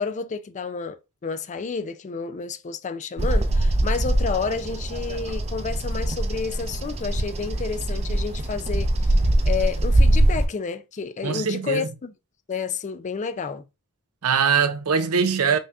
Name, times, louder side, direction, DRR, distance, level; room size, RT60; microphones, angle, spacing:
voice 1, 0.0-9.2 9.4-12.1 12.5-13.6, left 5 dB, 35° left, 0.4 m, -30 dB
Bird vocalization bird call bird song, 3.2-10.4, right 1 dB, 30° right, 0.5 m, -22 dB
voice 2, 11.2-11.9 14.2-15.6, right 6 dB, 90° right, 0.6 m, -22 dB
5.3 x 2.8 x 2.4 m
head